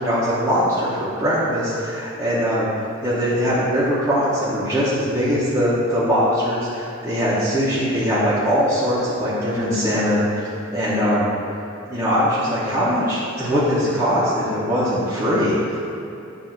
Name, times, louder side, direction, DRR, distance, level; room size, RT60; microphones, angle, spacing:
voice 1, 0.0-11.3 11.9-15.9, equal, 15° right, -11 dB, 1.0 m, -21 dB
7.9 x 2.7 x 6.0 m, 2.8 s
head